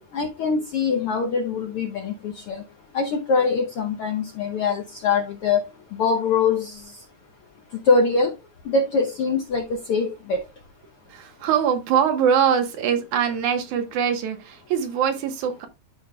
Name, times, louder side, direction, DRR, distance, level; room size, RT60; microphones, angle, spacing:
voice 1, 0.1-2.6 2.9-5.6 5.9-6.8 7.8-8.3 8.6-10.4, left 4 dB, 70° left, 1.3 m, -23 dB
voice 2, 11.1-15.7, right 8 dB, 70° right, 2.5 m, -23 dB
13.0 x 5.1 x 2.3 m
omnidirectional pair, 3.6 m